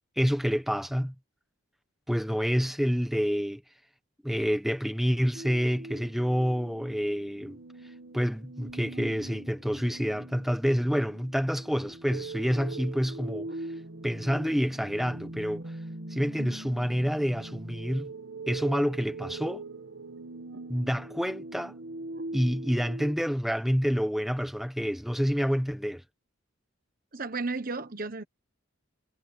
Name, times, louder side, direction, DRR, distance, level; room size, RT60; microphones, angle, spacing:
voice 1, 0.2-1.1 2.1-3.6 4.2-7.6 8.1-13.5 14.0-15.6 16.1-18.1 18.5-19.6 20.7-21.7 22.3-26.0, equal, ahead, 1.4 m, -28 dB
sound 1, 5.3-23.1, right 2 dB, 60° right, 1.5 m, -42 dB
voice 2, 27.1-28.2, right 3 dB, 40° right, 1.2 m, -33 dB
head